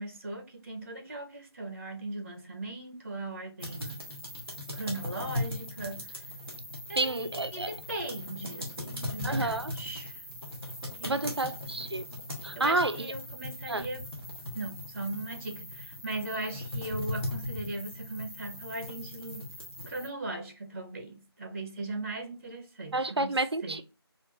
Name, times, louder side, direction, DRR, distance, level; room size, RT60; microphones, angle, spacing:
voice 1, 0.0-4.0 4.7-6.1 6.9-10.2 10.8-11.4 12.5-14.1 14.5-19.5 19.9-23.4 23.6-23.8, right 2 dB, 35° right, 0.8 m, -38 dB
sound 1, 3.6-20.1, left 1 dB, ahead, 0.5 m, -39 dB
voice 2, 7.0-7.7 9.2-9.7 11.1-12.0 12.4-13.0 13.7-13.9 22.9-23.8, right 2 dB, 80° right, 0.5 m, -29 dB
4.4 x 2.5 x 2.5 m
figure-of-eight pair, 165°, 13 cm